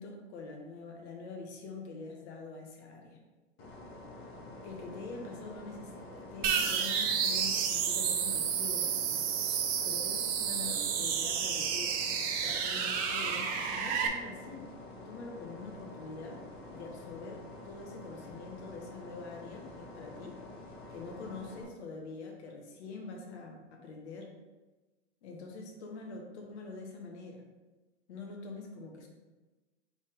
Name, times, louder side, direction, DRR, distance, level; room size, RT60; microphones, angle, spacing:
voice 1, 0.0-3.2 4.6-9.2 9.8-11.9 12.4-14.7 15.0-16.4 16.7-20.3 20.9-24.3 25.2-27.4 28.1-29.1, left 3 dB, 60° left, 2 dB, 1.1 m, -45 dB
sound 1, 3.6-21.6, left 2 dB, 35° left, 1.2 m, -48 dB
sound 2, 6.4-14.1, right 7 dB, 25° right, 0.4 m, -31 dB
4.2 x 3.5 x 3.6 m, 1.2 s
hypercardioid pair, 110°, 37 cm